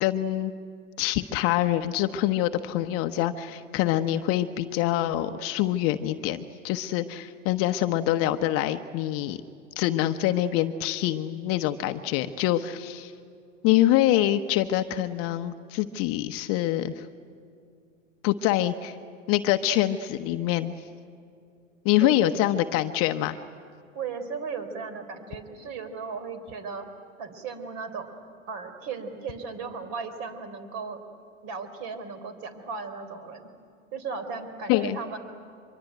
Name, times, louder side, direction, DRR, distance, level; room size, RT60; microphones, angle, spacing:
voice 1, 0.0-0.5 1.0-9.4 9.8-13.1 13.6-17.1 18.2-19.0 19.3-20.7 21.8-23.4 34.7-35.0, left 13 dB, 35° left, 9 dB, 0.9 m, -25 dB
voice 2, 22.0-22.5 23.9-26.9 27.2-28.1 28.5-31.0 31.4-33.5 33.9-35.2, right 5 dB, 40° right, 10 dB, 3.9 m, -36 dB
24.5 x 23.0 x 9.1 m, 2.4 s
hypercardioid pair, 130°, 40 cm